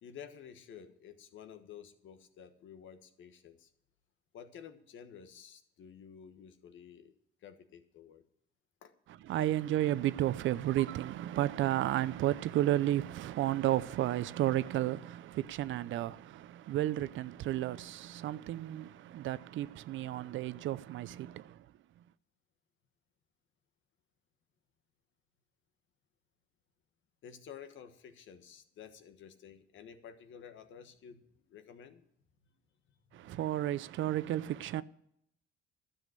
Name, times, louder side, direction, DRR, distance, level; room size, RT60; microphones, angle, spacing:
voice 1, 0.0-3.7 4.3-7.1 7.4-8.2 8.8-8.9 27.2-32.0 33.1-33.4, left 8 dB, 75° left, 1.4 m, -52 dB
voice 2, 9.3-21.6 33.1-34.8, right 13 dB, 75° right, 0.6 m, -32 dB
12.5 x 7.2 x 7.7 m
cardioid pair, 90°, 20 cm